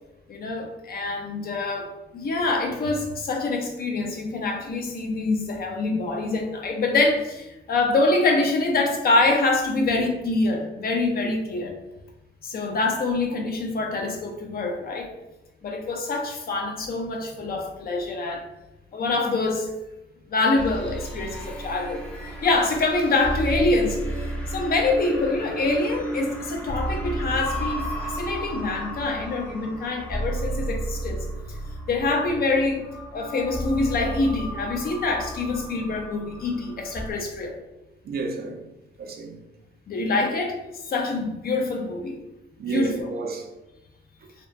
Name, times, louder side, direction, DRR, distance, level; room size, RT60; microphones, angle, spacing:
voice 1, 0.3-11.7 12.4-15.1 15.6-18.5 18.9-19.7 20.3-22.0 22.4-31.3 31.9-32.8 33.1-37.6 39.9-42.2 42.7-43.1, left 3 dB, 50° left, 0.6 m, -25 dB
sound 1, 20.6-37.1, right 1 dB, 5° left, 0.5 m, -33 dB
voice 2, 38.0-38.7 39.0-39.4 42.6-43.5 44.2-44.3, right 4 dB, 50° right, 0.4 m, -31 dB
2.8 x 2.0 x 2.5 m
cardioid pair, 90°, 20 cm